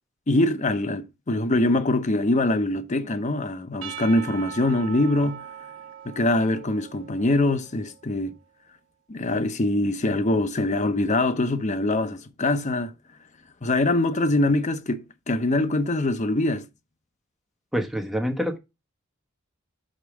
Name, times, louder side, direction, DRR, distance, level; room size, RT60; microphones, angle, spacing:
voice 1, 0.3-5.5 6.0-8.3 9.1-12.9 13.6-16.7, left 2 dB, 35° left, 0.7 m, -23 dB
Percussion / Church bell, 3.8-8.0, right 9 dB, 65° right, 1.3 m, -40 dB
voice 2, 17.7-18.6, equal, ahead, 1.1 m, -26 dB
5.1 x 4.6 x 6.1 m
head